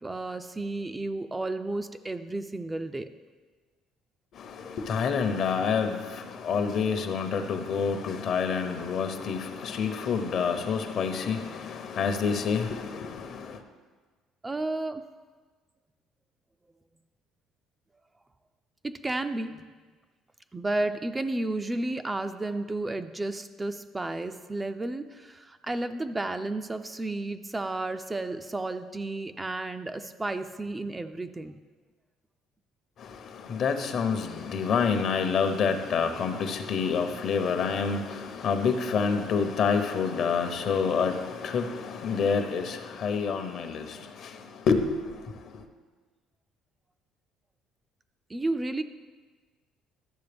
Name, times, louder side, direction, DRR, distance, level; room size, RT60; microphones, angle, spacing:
voice 1, 0.0-3.1 14.4-15.0 18.8-19.6 20.5-31.6 48.3-48.8, right 2 dB, 15° right, 0.3 m, -32 dB
voice 2, 4.4-13.6 33.0-44.4 44.7-44.8, left 6 dB, 55° left, 0.8 m, -28 dB
12.0 x 6.5 x 3.4 m
cardioid pair, 125°, 0 cm